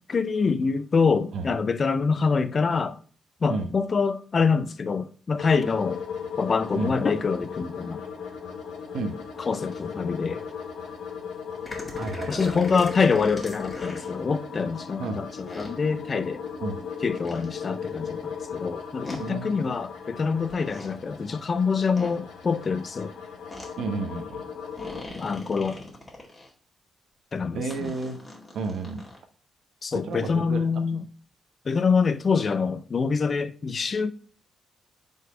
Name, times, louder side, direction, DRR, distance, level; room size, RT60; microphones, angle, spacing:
voice 1, 0.1-3.0 3.4-6.0 6.4-8.0 9.5-10.4 12.3-16.4 17.0-23.1 25.1-25.9 27.3-27.9 29.8-31.0 31.7-34.1, left 5 dB, 45° left, 0.5 m, -25 dB
sound 1, 5.4-25.1, left 6 dB, 80° left, 1.2 m, -37 dB
sound 2, 11.6-14.1 15.5-15.7 17.2-17.5 19.0-19.2 20.5-20.9 22.0-22.2 23.5-23.7 24.8-26.5 27.7-29.2, left 1 dB, 30° left, 2.1 m, -40 dB
voice 2, 11.9-12.6 15.0-15.2 16.6-16.8 19.2-19.5 23.8-24.4 27.5-28.2 28.5-29.0 29.9-30.6, right 3 dB, 75° right, 1.0 m, -31 dB
5.2 x 4.0 x 5.0 m
cardioid pair, 65°, 0 cm